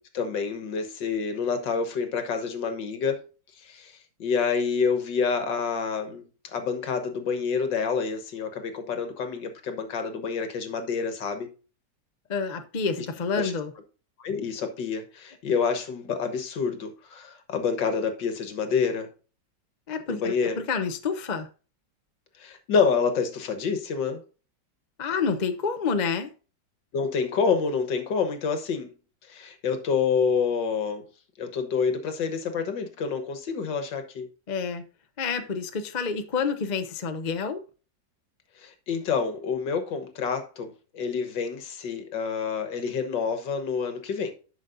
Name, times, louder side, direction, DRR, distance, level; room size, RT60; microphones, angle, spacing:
voice 1, 0.1-3.2 3.6-6.2 6.5-11.5 13.0-13.1 13.4-13.5 14.2-19.1 20.1-20.6 22.4-24.2 26.9-28.9 29.3-31.0 31.4-34.3 38.6-44.3, left 5 dB, 75° left, 2.0 m, -28 dB
voice 2, 12.3-13.7 19.9-21.5 25.0-26.3 34.5-34.8 35.2-37.6, left 5 dB, 40° left, 0.7 m, -28 dB
11.5 x 6.4 x 2.6 m
omnidirectional pair, 2.0 m